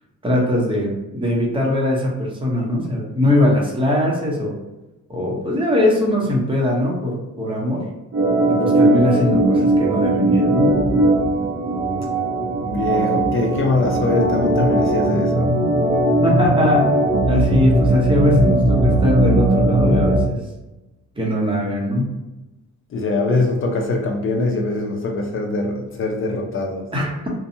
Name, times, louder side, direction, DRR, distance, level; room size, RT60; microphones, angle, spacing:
voice 1, 0.2-4.5 5.1-7.8 8.5-10.7 16.2-16.9 17.3-20.4 21.2-22.1 26.9-27.3, left 1 dB, 15° right, -3 dB, 0.9 m, -20 dB
Organ, 8.1-20.3, right 2 dB, 40° right, 0.6 m, -18 dB
voice 2, 12.7-15.5 22.9-26.9, left 2 dB, 45° left, 1 dB, 0.7 m, -22 dB
2.7 x 2.3 x 2.7 m, 1.0 s
cardioid pair, 90°, 30 cm